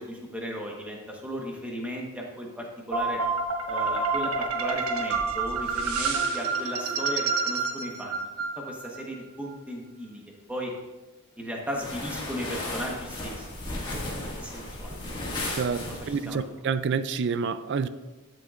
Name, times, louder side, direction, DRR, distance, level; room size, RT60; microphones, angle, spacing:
voice 1, 0.0-3.2 3.7-8.3 8.6-10.2 10.5-10.7 11.4-13.5 14.2-14.9 15.9-16.4, equal, 5° right, 1.1 m, -36 dB
sound 1, 2.9-9.0, right 4 dB, 85° right, 1.1 m, -28 dB
sound 2, 11.7-16.4, left 1 dB, 20° left, 1.9 m, -35 dB
voice 2, 15.5-17.9, right 5 dB, 50° right, 0.4 m, -28 dB
11.5 x 7.8 x 2.5 m
head